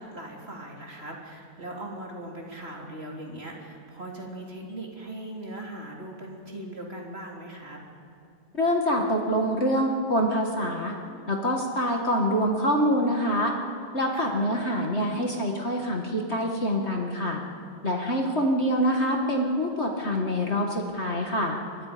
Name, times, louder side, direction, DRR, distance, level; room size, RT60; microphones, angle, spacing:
voice 1, 0.0-7.8 14.1-14.5, right 1 dB, 20° right, -1 dB, 3.0 m, -39 dB
voice 2, 8.5-11.0 11.3-13.5 13.9-17.4 17.8-21.6, equal, 25° left, 1 dB, 1.7 m, -25 dB
27.5 x 22.5 x 5.2 m, 2.4 s
omnidirectional pair, 3.3 m